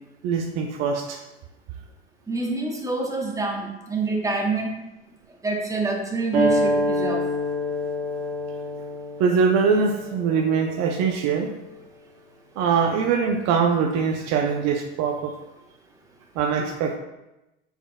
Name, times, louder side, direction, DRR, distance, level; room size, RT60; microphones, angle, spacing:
voice 1, 0.2-1.2 9.2-11.5 12.6-15.3 16.4-17.0, right 6 dB, 50° right, 2 dB, 0.6 m, -22 dB
voice 2, 2.3-4.7 5.4-7.2, right 3 dB, 10° right, 0 dB, 1.0 m, -27 dB
sound 1, 6.3-11.5, equal, 85° right, 1.1 m, -27 dB
5.3 x 4.0 x 2.2 m, 0.94 s
hypercardioid pair, 80°, 33 cm